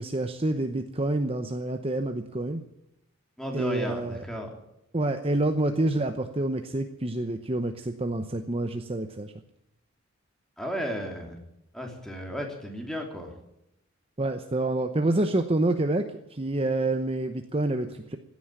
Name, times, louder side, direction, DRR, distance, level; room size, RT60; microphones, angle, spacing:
voice 1, 0.0-2.6 3.5-4.2 4.9-9.3 14.2-18.2, right 2 dB, 25° right, 7 dB, 0.9 m, -27 dB
voice 2, 3.4-4.5 10.6-11.4 11.7-13.3, equal, ahead, 2 dB, 3.1 m, -34 dB
16.5 x 9.6 x 8.9 m, 0.86 s
head